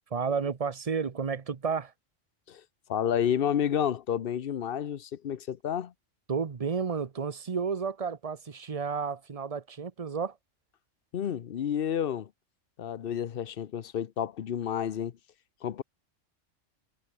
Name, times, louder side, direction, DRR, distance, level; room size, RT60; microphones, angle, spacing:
voice 1, 0.1-1.9 6.3-10.4, right 5 dB, 30° right, 0.8 m, -31 dB
voice 2, 2.9-5.9 11.1-12.3 12.8-15.1 15.6-15.8, left 9 dB, 50° left, 0.8 m, -30 dB
omnidirectional pair, 1.3 m